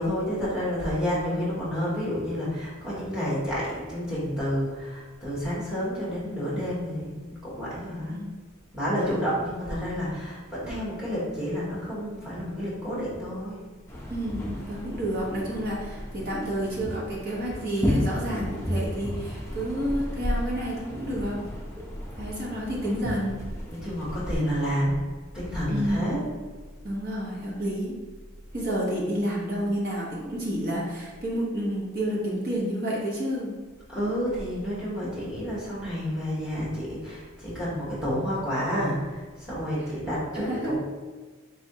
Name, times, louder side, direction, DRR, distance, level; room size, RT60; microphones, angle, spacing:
voice 1, 0.0-8.2 8.7-13.6 23.7-25.0 25.3-26.2 33.9-40.8, equal, 5° right, -8 dB, 1.2 m, -30 dB
voice 2, 8.0-8.4 8.9-9.2 14.1-21.4 22.2-23.4 25.7-26.1 26.8-27.9 28.5-33.5 35.1-35.4 39.8-39.9 40.3-40.8, equal, 45° right, -5 dB, 0.9 m, -30 dB
sound 1, 13.9-24.4, equal, 10° left, 0.5 m, -33 dB
3.5 x 3.3 x 2.8 m, 1.3 s
head